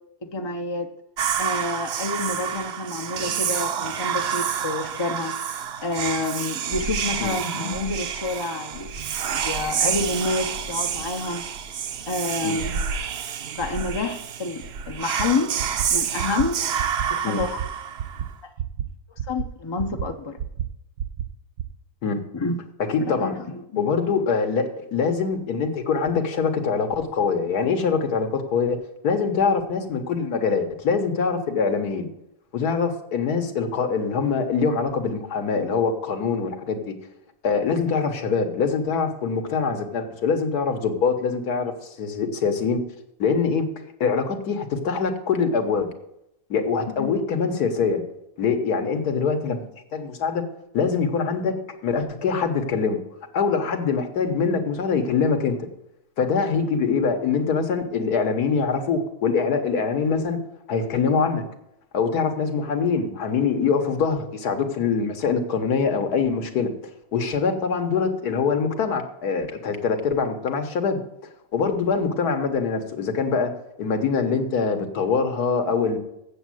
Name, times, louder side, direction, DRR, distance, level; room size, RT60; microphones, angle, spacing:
voice 1, 0.2-0.9 1.4-5.4 5.8-8.9 9.2-11.4 12.1-12.8 13.6-15.5 15.9-16.6 17.1-17.6 18.4-18.5 19.3-20.4 22.3-22.6 23.0-23.9 47.0-47.1, left 3 dB, 45° left, 5 dB, 0.3 m, -28 dB
Whispering, 1.2-18.3, right 7 dB, 60° right, 0.7 m, -28 dB
sound 1, 15.2-15.3 15.6-15.9 16.2-16.5 16.8-17.1 17.4-17.7 18.0-18.3 18.6-18.8 19.2-19.5 19.8-20.1 20.4-20.7 21.0-21.3 21.6-21.7, right 10 dB, 75° right, 1.2 m, -28 dB
voice 2, 22.9-23.4 23.8-28.8 29.0-32.1 32.5-36.9 37.4-42.8 43.2-43.7 44.0-45.9 46.5-48.0 48.4-50.4 50.7-53.0 53.3-55.6 56.2-60.4 60.7-61.4 61.9-66.7 67.1-71.0 71.5-73.5 73.8-76.0, left 5 dB, 80° left, 5 dB, 1.7 m, -24 dB
7.9 x 7.4 x 7.7 m, 0.82 s
omnidirectional pair, 1.6 m